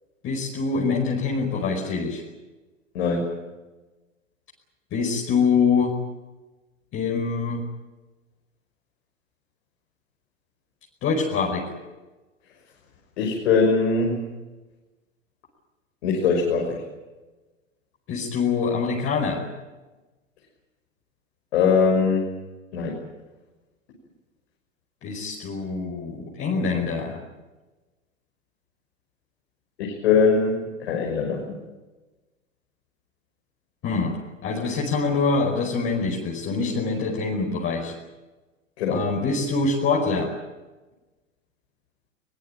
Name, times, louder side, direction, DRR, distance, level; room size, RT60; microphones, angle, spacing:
voice 1, 0.2-2.2 4.9-5.9 6.9-7.6 11.0-11.7 18.1-19.4 25.0-27.2 33.8-34.1 34.4-37.9 38.9-40.3, left 4 dB, 35° left, -1 dB, 5.2 m, -24 dB
voice 2, 2.9-3.3 13.2-14.3 16.0-16.8 21.5-22.3 22.7-22.9 29.8-31.5 38.8-39.0, left 5 dB, 60° left, 0 dB, 6.2 m, -21 dB
23.5 x 21.0 x 9.0 m, 1.2 s
figure-of-eight pair, 95°, 38 cm